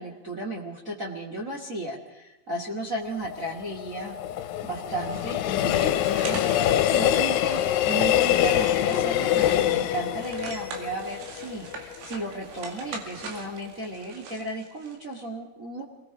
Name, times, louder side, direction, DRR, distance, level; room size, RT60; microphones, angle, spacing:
voice 1, 0.0-4.1 4.6-6.5 6.8-15.8, right 1 dB, 45° right, -2 dB, 1.0 m, -34 dB
Train, 3.2-12.2 12.6-12.7, left 12 dB, 90° left, 3.4 m, -25 dB
sound 1, 5.1-6.6 7.0-7.1 7.6-7.8 8.1-9.9 10.2-15.3, right 4 dB, 75° right, 4.6 m, -42 dB
28.0 x 20.0 x 5.0 m, 0.97 s
omnidirectional pair, 5.4 m